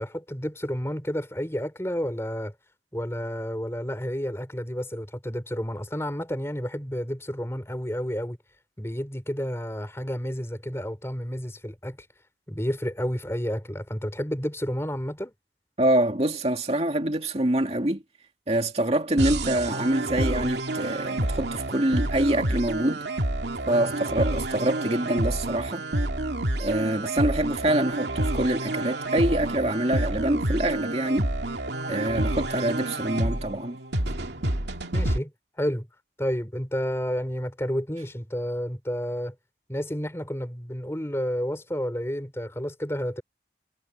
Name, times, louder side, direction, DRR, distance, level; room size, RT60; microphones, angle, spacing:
voice 1, 0.0-2.5 2.9-8.4 8.8-12.0 12.5-15.3 34.9-35.3 35.6-35.9 36.2-39.4 39.7-43.2, equal, 15° left, 3.8 m, -30 dB
voice 2, 15.8-18.0 18.5-23.1 23.7-25.8 26.6-31.3 31.9-33.8, right 1 dB, 35° right, 2.5 m, -25 dB
sound 1, 19.2-35.2, right 1 dB, 80° right, 2.4 m, -28 dB
head